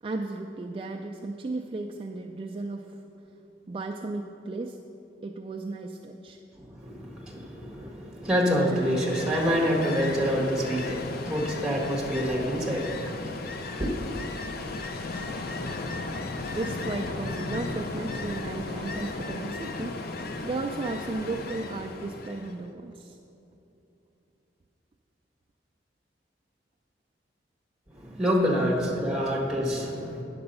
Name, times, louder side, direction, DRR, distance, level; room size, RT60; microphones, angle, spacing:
voice 1, 0.0-3.0 3.7-4.8 5.2-6.4 16.5-23.2, right 3 dB, 30° right, 2 dB, 0.3 m, -35 dB
voice 2, 6.6-13.4 13.8-14.0 27.9-30.2, equal, 5° right, -3 dB, 1.6 m, -27 dB
Ocean, 8.5-22.6, left 3 dB, 55° left, 0.6 m, -35 dB
9.6 x 6.8 x 5.4 m, 2.9 s
head